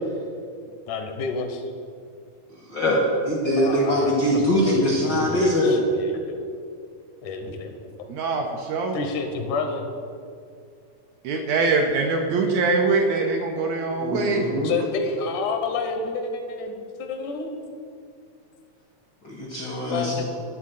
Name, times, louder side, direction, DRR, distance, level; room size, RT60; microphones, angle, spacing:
voice 1, 0.9-1.6 3.6-6.5 7.2-8.1 8.9-9.9 14.6-17.7 19.8-20.2, left 4 dB, 80° left, 5 dB, 2.3 m, -30 dB
voice 2, 2.7-5.8 14.0-14.7 19.2-20.2, equal, 60° left, -2 dB, 1.1 m, -22 dB
voice 3, 8.1-9.0 11.3-14.5, right 3 dB, 75° right, 3 dB, 1.7 m, -23 dB
11.5 x 4.2 x 7.6 m, 2.3 s
omnidirectional pair, 3.6 m